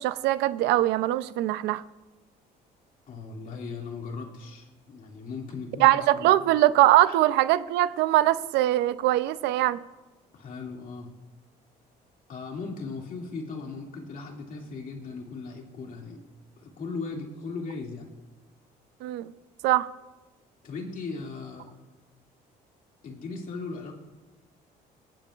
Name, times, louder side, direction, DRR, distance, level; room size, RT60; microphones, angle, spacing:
voice 1, 0.0-1.8 5.8-9.8 19.0-19.3 19.6-19.9, right 15 dB, 85° right, 15 dB, 0.5 m, -22 dB
voice 2, 3.1-6.3 7.1-7.2 10.3-11.1 12.3-16.2 16.6-18.1 20.6-21.7 23.0-23.9, left 4 dB, 55° left, 1 dB, 2.4 m, -37 dB
20.0 x 10.5 x 2.5 m, 1.1 s
cardioid pair, 110°, 17 cm